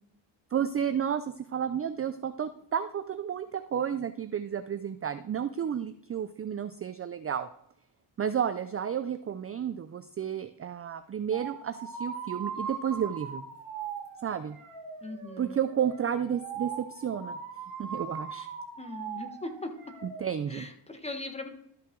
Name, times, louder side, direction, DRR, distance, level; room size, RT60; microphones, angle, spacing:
voice 1, 0.5-7.5 8.2-13.5 14.2-14.6 15.4-17.4 17.8-18.5 20.0-20.7, right 8 dB, 30° right, 11 dB, 0.4 m, -32 dB
sound 1, 11.3-20.2, right 6 dB, 80° right, 2.3 m, -40 dB
voice 2, 15.0-15.6 18.8-19.7 20.5-21.5, left 2 dB, 15° left, 5 dB, 1.3 m, -39 dB
12.5 x 5.7 x 3.8 m, 0.69 s
cardioid pair, 105°, 49 cm